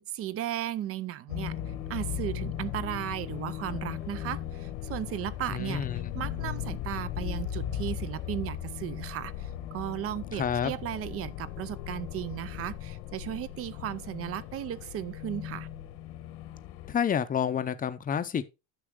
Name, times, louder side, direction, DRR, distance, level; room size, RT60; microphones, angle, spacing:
voice 1, 0.0-1.6 1.9-5.9 6.1-15.7, right 12 dB, 30° right, 0.4 m, -35 dB
sound 1, 1.3-16.9, left 11 dB, 80° left, 1.4 m, -37 dB
voice 2, 5.5-6.1 10.3-10.8 16.9-18.5, left 8 dB, 20° left, 0.6 m, -29 dB
9.9 x 6.9 x 3.6 m
cardioid pair, 160°, 48 cm